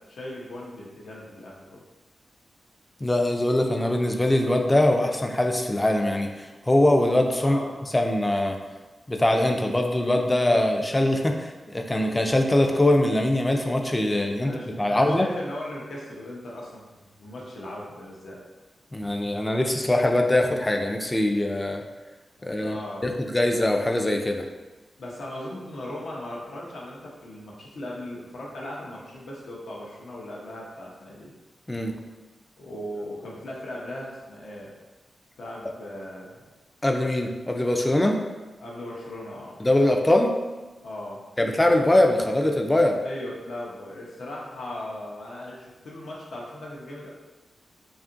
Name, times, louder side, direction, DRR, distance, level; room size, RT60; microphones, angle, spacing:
voice 1, 0.1-1.8 7.4-7.8 14.4-18.4 22.4-23.0 25.0-31.3 32.6-34.7 35.4-36.4 38.6-39.6 40.8-41.2 43.0-47.1, left 1 dB, 80° left, -4 dB, 0.6 m, -38 dB
voice 2, 3.0-7.6 7.9-8.6 9.1-15.3 18.9-21.8 22.4-24.4 31.7-31.9 36.8-38.2 39.6-40.3 41.4-43.0, left 1 dB, 15° left, 3 dB, 0.3 m, -22 dB
2.8 x 2.4 x 2.5 m, 1.2 s
cardioid pair, 75°, 0 cm